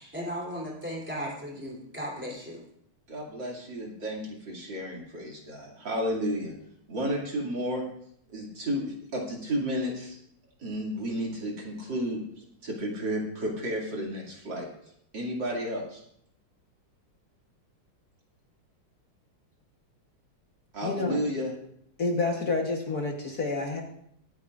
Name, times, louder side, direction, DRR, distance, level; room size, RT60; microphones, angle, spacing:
voice 1, 0.0-2.6, equal, 5° right, -2 dB, 3.4 m, -36 dB
voice 2, 3.1-6.5 6.9-7.8 8.3-10.2 10.6-12.2 12.6-14.7 15.1-16.0 20.7-21.5, equal, 60° right, -2 dB, 3.2 m, -32 dB
voice 3, 20.8-21.2 22.0-23.8, left 3 dB, 50° left, 1 dB, 1.6 m, -29 dB
23.5 x 9.3 x 2.5 m, 0.69 s
omnidirectional pair, 2.3 m